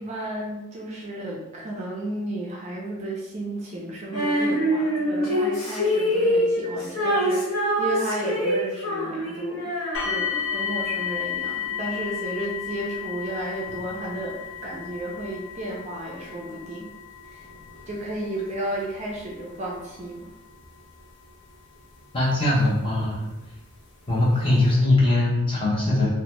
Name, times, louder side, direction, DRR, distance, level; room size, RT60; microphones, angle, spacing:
voice 1, 0.0-9.7 10.0-16.9 17.2-17.5 17.9-20.3, right 1 dB, 30° right, -3 dB, 0.4 m, -33 dB
Female singing, 4.1-10.6, equal, 70° left, 1.0 m, -25 dB
sound 1, 9.9-22.8 23.7-23.8 24.3-24.4, left 8 dB, 55° left, 0.5 m, -34 dB
voice 2, 22.1-23.3 24.1-26.1, left 2 dB, 25° left, -5 dB, 0.7 m, -21 dB
2.7 x 2.1 x 3.0 m, 0.97 s
head